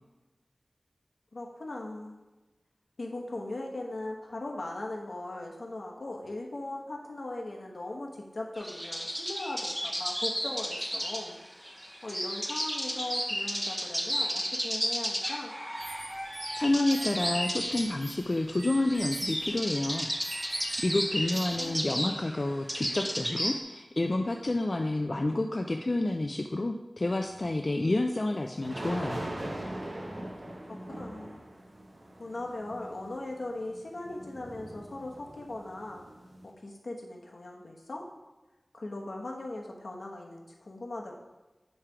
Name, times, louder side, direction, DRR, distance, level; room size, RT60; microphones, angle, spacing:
voice 1, 1.3-2.2 3.0-11.4 11.6-15.5 21.6-21.8 30.7-31.4 32.2-36.0 36.4-38.1 38.7-41.2, left 2 dB, 75° left, 0 dB, 1.1 m, -39 dB
sound 1, 8.6-23.6, equal, 10° right, 0.8 m, -33 dB
sound 2, 15.8-21.7, right 3 dB, 80° right, 0.7 m, -44 dB
voice 2, 16.6-20.1 20.8-29.3, left 2 dB, 45° left, 3 dB, 0.4 m, -29 dB
sound 3, 27.2-27.4 28.6-36.5, right 1 dB, 60° right, 1.1 m, -41 dB
8.7 x 3.3 x 4.9 m, 1.1 s
wide cardioid pair, 75°, 0 cm